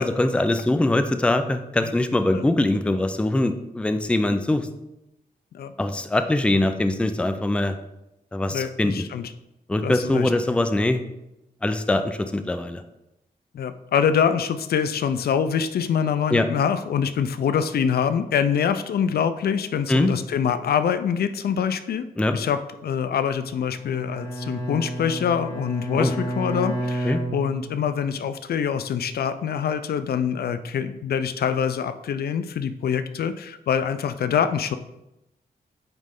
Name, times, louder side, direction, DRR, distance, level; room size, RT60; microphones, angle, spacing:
voice 1, 0.0-4.7 5.8-7.8 8.3-9.0 9.7-11.0 11.6-12.8 16.3-16.5 19.9-20.1 22.2-22.3 26.0-26.1 27.0-27.2, left 1 dB, 5° left, 9 dB, 0.4 m, -22 dB
voice 2, 8.5-9.3 9.8-10.3 13.5-22.1 22.3-34.8, left 7 dB, 75° left, 11 dB, 0.4 m, -25 dB
Bowed string instrument, 23.7-28.1, right 1 dB, 30° left, 1.3 m, -31 dB
9.0 x 3.2 x 3.6 m, 0.90 s
wide cardioid pair, 125°, 16 cm